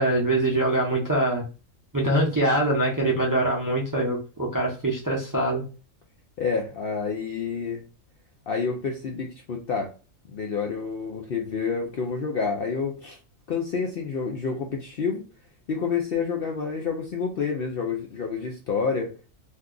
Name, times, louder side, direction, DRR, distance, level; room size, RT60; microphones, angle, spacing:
voice 1, 0.0-1.4 1.9-5.6, right 1 dB, 20° right, 0.6 m, -23 dB
voice 2, 6.4-7.8 8.5-9.9 10.3-13.2 13.5-15.2 15.7-19.2, left 5 dB, 60° left, 0.6 m, -28 dB
2.7 x 2.3 x 3.7 m
omnidirectional pair, 1.4 m